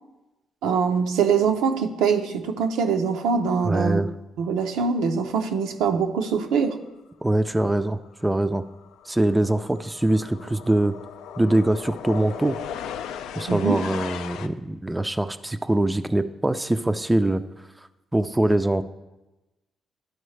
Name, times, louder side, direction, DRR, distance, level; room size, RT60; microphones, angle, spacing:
voice 1, 0.6-4.0 4.4-6.8 13.5-13.8, right 6 dB, 90° right, 5 dB, 0.6 m, -23 dB
voice 2, 3.6-4.1 7.2-8.6 9.1-11.0 11.4-12.6 13.4-17.4 18.1-18.8, right 1 dB, 10° right, 10 dB, 0.3 m, -23 dB
sound 1, 7.9-8.0 8.2-14.5, left 8 dB, 90° left, 0.3 m, -37 dB
12.0 x 4.7 x 3.2 m, 1.0 s
cardioid pair, 90°, 0 cm